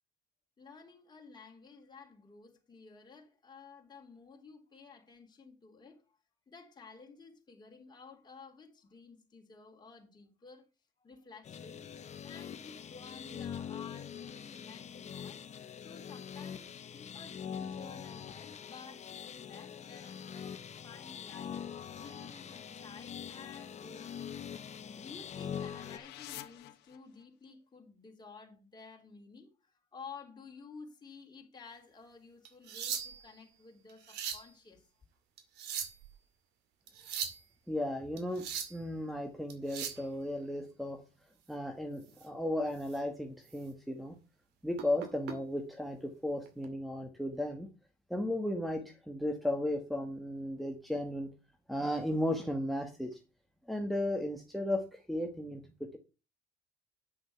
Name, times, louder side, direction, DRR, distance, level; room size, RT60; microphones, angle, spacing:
voice 1, 0.6-6.2 6.5-10.6 11.0-11.8 12.2-15.4 15.8-21.6 22.0-24.5 24.9-34.8, left 5 dB, 25° left, 3.4 m, -53 dB
sound 1, 11.4-26.0, left 8 dB, 40° left, 1.0 m, -44 dB
sound 2, 24.1-27.5, left 14 dB, 85° left, 1.3 m, -52 dB
sound 3, 32.5-33.4 33.9-34.5 35.4-36.1 36.9-37.4 38.2-38.8 39.5-40.0 42.1-42.3 42.8-43.0 43.5-43.6 44.8-45.4 46.5-46.7, right 8 dB, 85° right, 2.2 m, -39 dB
voice 2, 37.7-38.4 38.7-41.0 41.5-44.1 44.6-47.7 48.1-51.3 51.7-53.2 53.7-56.0, left 1 dB, ahead, 1.5 m, -35 dB
9.8 x 6.6 x 5.7 m
cardioid pair, 110°, 17 cm